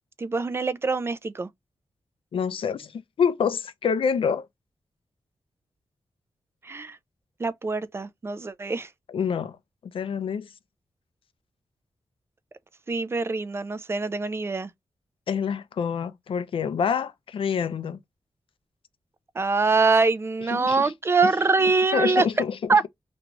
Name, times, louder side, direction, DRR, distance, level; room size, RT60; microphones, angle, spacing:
voice 1, 0.2-1.5 6.6-7.0 7.4-8.9 12.9-14.7 19.3-22.3 22.7-22.9, right 4 dB, 25° right, 0.3 m, -24 dB
voice 2, 2.3-4.5 9.1-9.6 9.9-10.5 15.3-18.0 20.5-20.9 21.9-22.6, left 6 dB, 70° left, 0.4 m, -27 dB
2.5 x 2.3 x 2.8 m
wide cardioid pair, 140°, 9 cm